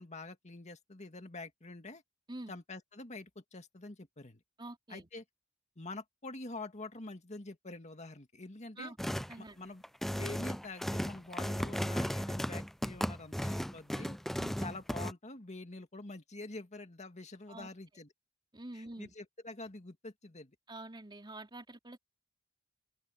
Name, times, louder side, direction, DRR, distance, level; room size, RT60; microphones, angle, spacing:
voice 1, 0.0-2.0 2.5-4.4 4.9-5.2 5.8-8.9 9.4-9.8 10.1-14.2 14.6-18.1 18.7-20.6, left 2 dB, 35° left, 2.1 m, -46 dB
voice 2, 4.6-5.1 8.8-9.0 9.3-9.6 14.3-14.6 17.5-17.7 18.5-19.1 20.7-22.0, right 2 dB, 25° right, 3.2 m, -46 dB
sound 1, 9.0-9.3 9.8-15.1, equal, ahead, 0.4 m, -35 dB
head